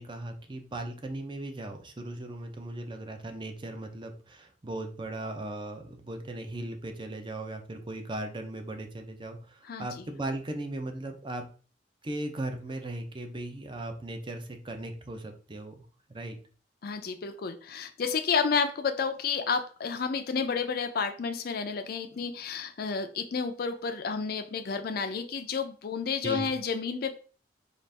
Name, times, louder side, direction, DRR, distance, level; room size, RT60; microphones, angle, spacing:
voice 1, 0.0-11.5 12.0-15.8 16.1-16.4 26.2-26.5, right 1 dB, 30° right, 5 dB, 0.6 m, -37 dB
voice 2, 9.6-10.1 16.8-27.2, left 5 dB, 60° left, 8 dB, 0.4 m, -31 dB
4.0 x 2.5 x 3.3 m, 0.39 s
head